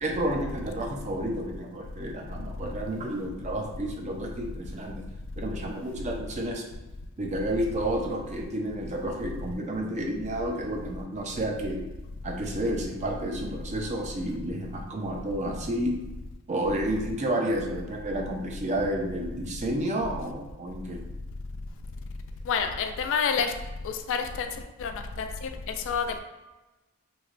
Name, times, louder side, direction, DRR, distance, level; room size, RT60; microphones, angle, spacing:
voice 1, 0.0-5.0 5.4-6.6 7.2-11.8 12.2-15.9 16.5-21.0, right 1 dB, 30° right, 1 dB, 0.4 m, -31 dB
voice 2, 22.5-23.5 23.8-24.5 24.8-24.9 25.2-26.2, left 6 dB, 60° left, 6 dB, 0.3 m, -28 dB
3.2 x 2.8 x 2.5 m, 1.1 s
head